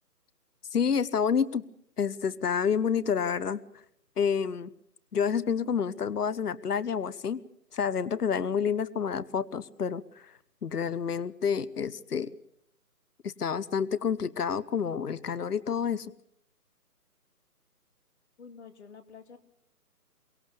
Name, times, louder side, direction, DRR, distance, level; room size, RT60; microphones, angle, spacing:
voice 1, 0.7-1.6 2.0-3.6 4.2-4.7 5.1-7.4 7.7-10.0 10.6-12.3 13.2-16.1, left 7 dB, 70° left, 19 dB, 1.0 m, -28 dB
voice 2, 18.4-19.4, left 6 dB, 45° left, 9 dB, 2.2 m, -49 dB
24.0 x 21.5 x 6.8 m, 0.73 s
figure-of-eight pair, 155°, 48 cm